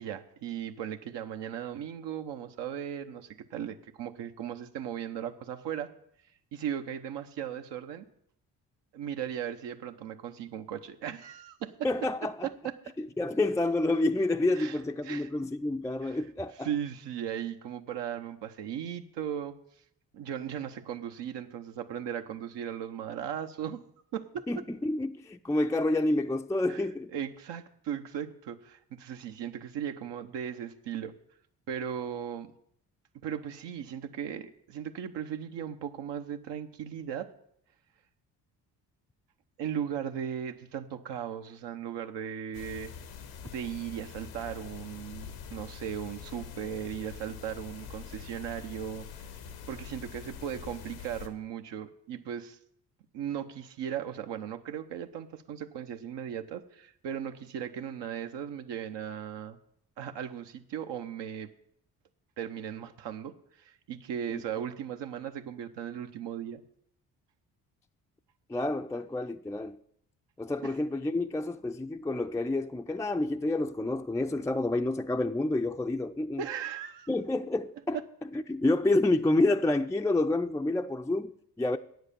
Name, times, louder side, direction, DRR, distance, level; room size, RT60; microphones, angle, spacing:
voice 1, 0.0-5.9 6.5-8.1 8.9-11.7 12.4-12.7 14.5-15.3 16.0-16.3 16.6-19.6 20.1-23.8 24.1-24.7 26.7-31.1 31.7-32.5 33.2-37.3 39.6-42.9 43.4-49.3 49.7-52.6 53.1-59.6 60.0-61.5 62.4-66.6 70.6-70.7 76.4-77.1 77.9-78.0, right 9 dB, 70° right, 0.9 m, -37 dB
voice 2, 11.8-12.5 13.0-16.7 24.5-27.1 64.3-64.4 68.5-69.8 70.4-76.4 77.1-78.0 78.5-81.8, left 2 dB, 5° left, 0.4 m, -29 dB
sound 1, 42.5-51.3, left 7 dB, 90° left, 1.2 m, -44 dB
9.0 x 7.9 x 6.8 m
supercardioid pair, 55°, 43 cm